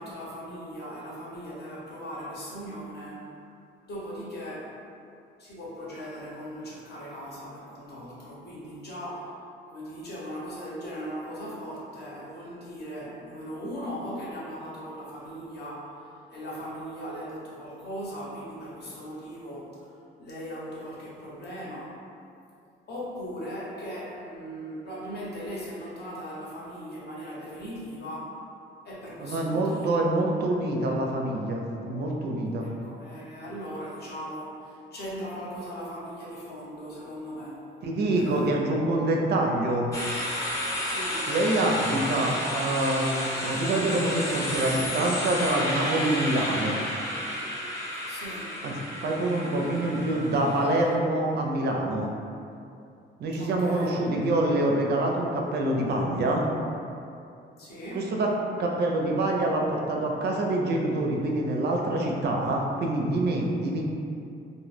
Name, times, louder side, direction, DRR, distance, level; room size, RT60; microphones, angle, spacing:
voice 1, 0.0-3.3 3.9-4.8 5.4-9.4 9.7-22.0 22.9-28.4 28.8-29.9 32.6-37.7 38.1-38.6 40.8-41.3 48.1-48.6 53.3-54.0 57.6-58.1, equal, 55° left, -6 dB, 0.8 m, -39 dB
voice 2, 29.2-32.7 37.8-39.9 41.3-46.8 48.6-48.7 49.0-52.1 53.2-56.4 57.9-58.3 58.6-63.9, right 1 dB, 55° right, 0 dB, 0.4 m, -26 dB
sound 1, 39.9-50.9, left 1 dB, 15° left, 0.6 m, -32 dB
2.1 x 2.1 x 3.1 m, 2.5 s
cardioid pair, 90°, 20 cm